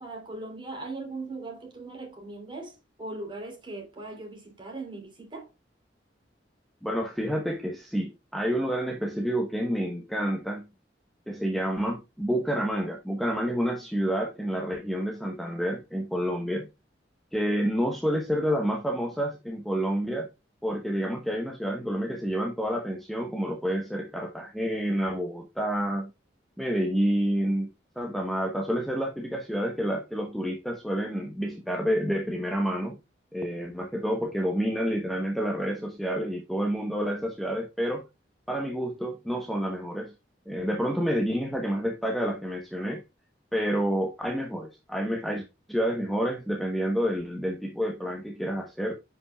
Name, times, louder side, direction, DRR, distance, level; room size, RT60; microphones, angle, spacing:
voice 1, 0.0-5.5, right 2 dB, 25° right, 3.5 m, -39 dB
voice 2, 6.8-10.7 11.3-16.7 17.3-20.3 20.6-26.1 26.6-27.7 28.0-33.0 33.3-38.0 38.5-40.1 40.5-43.0 43.5-48.9, equal, ahead, 1.0 m, -29 dB
10.5 x 5.6 x 2.3 m
head